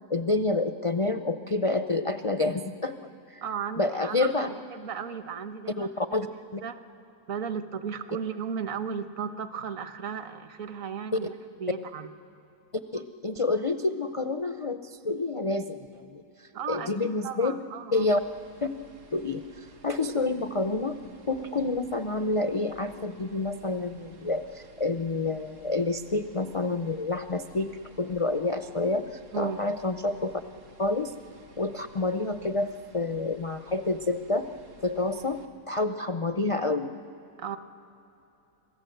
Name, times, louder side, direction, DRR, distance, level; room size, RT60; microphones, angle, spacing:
voice 1, 0.1-3.0 3.3-3.4 3.8-4.5 5.8-6.3 6.5-6.6 12.9-17.5 17.9-18.2 18.6-18.7 19.1-21.0 21.3-27.7 28.0-30.4 30.8-31.1 31.6-34.5 34.8-35.4 35.7-36.9, left 2 dB, 55° left, 9 dB, 0.3 m, -28 dB
voice 2, 3.4-4.3 4.7-5.9 6.6-6.8 7.3-11.3 11.6-12.1 16.5-16.9 17.2-18.1 29.3-29.6 37.4-37.6, right 7 dB, 60° right, 9 dB, 1.4 m, -35 dB
sound 1, 18.0-35.5, right 2 dB, 85° right, 2.4 m, -54 dB
26.5 x 18.5 x 7.9 m, 2.9 s
omnidirectional pair, 1.7 m